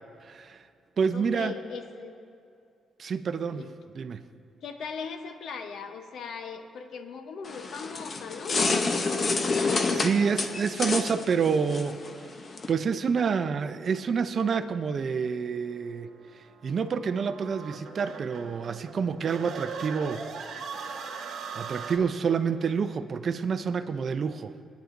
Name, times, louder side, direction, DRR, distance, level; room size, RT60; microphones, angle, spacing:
voice 1, 0.2-0.6 1.0-1.5 3.0-3.6 4.0-4.2 9.6-12.0 12.7-16.1 16.6-20.7 21.5-24.5, right 6 dB, 40° right, 10 dB, 0.4 m, -28 dB
voice 2, 1.1-2.3 3.5-3.7 4.6-8.6, left 5 dB, 60° left, 6 dB, 0.8 m, -39 dB
sound 1, 7.5-12.7, left 3 dB, 30° left, 0.6 m, -28 dB
sound 2, 15.5-22.0, right 5 dB, 90° right, 1.0 m, -40 dB
21.5 x 9.2 x 2.6 m, 2.5 s
cardioid pair, 170°, 0 cm